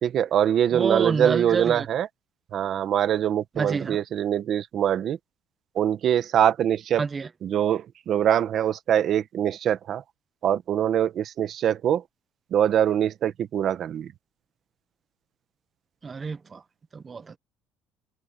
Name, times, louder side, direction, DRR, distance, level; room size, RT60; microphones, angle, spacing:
voice 1, 0.0-2.1 2.5-5.2 5.7-7.0 7.4-10.0 10.4-12.0 12.5-14.1, right 10 dB, 35° right, 1.2 m, -23 dB
voice 2, 0.7-1.9 3.6-4.0 7.0-7.3 16.0-16.6 16.9-17.4, right 5 dB, 20° right, 0.8 m, -28 dB
open air
cardioid pair, 175°, 0 cm